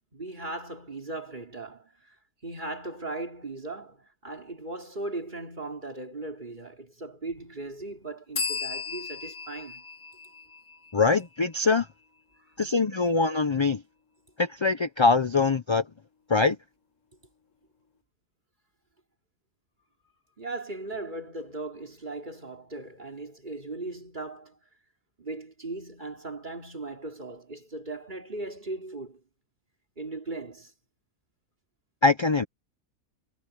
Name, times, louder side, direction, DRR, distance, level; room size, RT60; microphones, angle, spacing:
voice 1, 0.1-2.2 2.4-9.8 20.4-24.6 25.2-29.2 30.0-30.7, right 2 dB, 30° right, 3.2 m, -38 dB
sound 1, 8.3-11.9, left 5 dB, 60° left, 2.2 m, -36 dB
voice 2, 10.9-11.9 12.6-13.8 14.4-15.9 16.3-16.6 32.0-32.4, left 4 dB, 35° left, 0.4 m, -23 dB
omnidirectional pair, 1.5 m